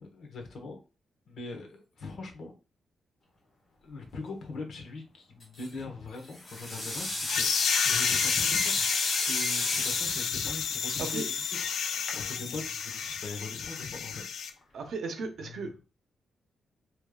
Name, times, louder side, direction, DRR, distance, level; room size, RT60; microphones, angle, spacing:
voice 1, 0.1-0.8 1.3-2.5 3.8-8.9 9.3-14.2 15.4-15.7, left 3 dB, 60° left, 3 dB, 1.1 m, -41 dB
sound 1, 5.4-5.8 6.3-12.5, left 1 dB, 30° left, 1.3 m, -34 dB
sound 2, 7.3-14.5, left 7 dB, 75° left, 0.4 m, -31 dB
voice 2, 14.7-15.8, right 4 dB, 60° right, 5 dB, 0.8 m, -36 dB
4.8 x 3.2 x 2.3 m, 0.30 s
wide cardioid pair, 165°, 0 cm